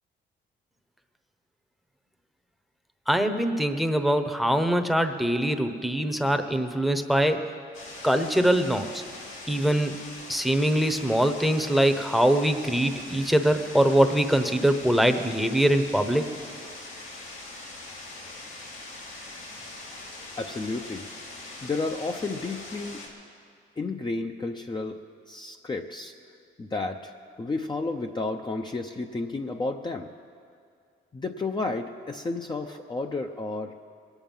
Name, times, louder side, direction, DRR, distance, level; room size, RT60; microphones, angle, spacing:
voice 1, 3.1-7.4 8.0-9.0 9.5-10.0 10.3-16.3, right 1 dB, ahead, 8 dB, 0.9 m, -23 dB
sound 1, 7.7-23.1, left 2 dB, 85° left, 2.8 m, -42 dB
voice 2, 20.4-21.1 21.6-23.0 23.8-25.0 25.3-26.1 26.6-30.1 31.1-33.7, left 3 dB, 20° left, 3 dB, 0.7 m, -32 dB
22.0 x 9.1 x 5.5 m, 2.2 s
cardioid pair, 90°, 20 cm